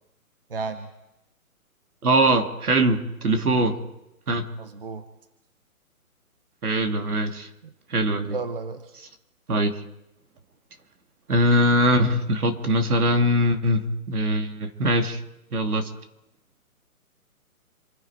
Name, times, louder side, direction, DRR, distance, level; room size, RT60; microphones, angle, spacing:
voice 1, 0.5-0.9 4.6-5.0 7.6-7.7 8.3-8.8, right 4 dB, 40° right, 10 dB, 1.0 m, -32 dB
voice 2, 2.0-3.8 4.3-4.5 6.6-7.5 7.9-8.4 9.5-9.8 11.3-15.2 15.5-15.9, right 1 dB, 80° right, 6 dB, 2.6 m, -22 dB
27.5 x 10.0 x 4.9 m, 0.88 s
hypercardioid pair, 180°, 44 cm